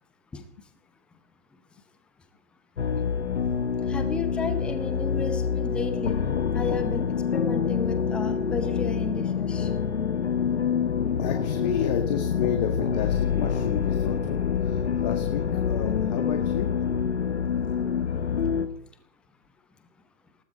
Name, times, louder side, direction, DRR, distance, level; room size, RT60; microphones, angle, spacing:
sound 1, 2.8-18.7, left 7 dB, 55° left, 1.5 m, -26 dB
voice 1, 3.9-6.2 6.5-7.0 7.3-9.7, left 4 dB, 5° left, 9 dB, 0.6 m, -33 dB
voice 2, 11.2-16.7, left 9 dB, 30° left, 6 dB, 1.6 m, -31 dB
19.5 x 17.0 x 4.2 m, 0.64 s
figure-of-eight pair, 120°, 39 cm